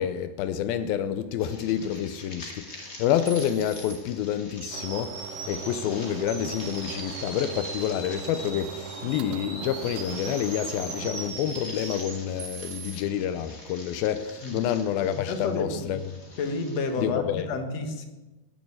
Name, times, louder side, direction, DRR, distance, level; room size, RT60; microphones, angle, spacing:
voice 1, 0.0-16.0 17.0-17.5, left 10 dB, 85° left, 2.5 m, -28 dB
sound 1, 1.4-17.0, left 2 dB, 30° left, 2.1 m, -46 dB
sound 2, 2.9-3.0 3.3-3.9 4.6-5.9 6.3-12.9, right 3 dB, 55° right, 4.7 m, -39 dB
sound 3, 4.7-11.3, right 12 dB, 75° right, 2.0 m, -41 dB
voice 2, 15.2-15.9 16.4-18.1, left 3 dB, 55° left, 2.4 m, -30 dB
13.0 x 10.5 x 8.8 m
omnidirectional pair, 4.2 m